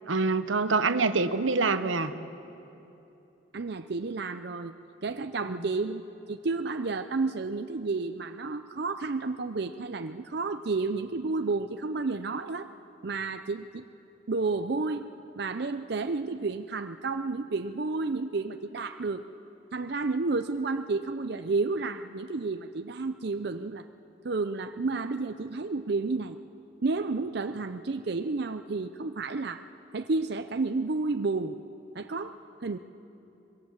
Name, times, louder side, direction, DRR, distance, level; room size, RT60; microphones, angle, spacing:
voice 1, 0.1-2.1 5.4-5.6, right 3 dB, 85° right, 11 dB, 1.0 m, -26 dB
voice 2, 3.5-4.7 5.0-6.0 6.3-12.7 13.0-13.8 14.3-15.1 15.4-19.3 19.7-23.9 24.2-26.4 26.8-29.6 29.9-31.6 31.9-32.8, right 3 dB, 55° right, 7 dB, 0.6 m, -31 dB
24.5 x 22.5 x 7.3 m, 2.9 s
head